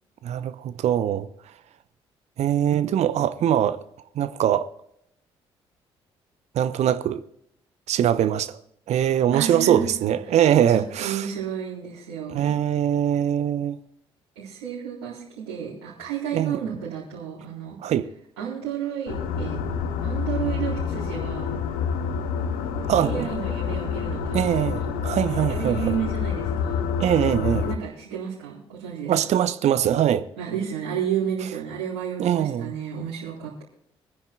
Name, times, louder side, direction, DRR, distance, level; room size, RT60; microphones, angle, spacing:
voice 1, 0.2-1.3 2.4-3.8 4.2-4.7 6.5-7.2 7.9-8.6 8.9-11.3 12.3-13.8 16.3-16.6 17.8-18.1 22.9-23.3 24.3-25.8 27.0-27.6 29.1-30.2 32.2-32.7, right 10 dB, 55° right, 0.8 m, -22 dB
voice 2, 9.3-10.4 10.7-12.5 14.4-17.8 18.4-19.6 20.0-21.5 23.0-24.8 25.3-26.8 27.5-29.4 30.4-33.6, right 8 dB, 75° right, 4.0 m, -32 dB
sound 1, 19.1-27.8, left 6 dB, 75° left, 1.1 m, -28 dB
25.5 x 10.0 x 2.4 m
hypercardioid pair, 45°, 13 cm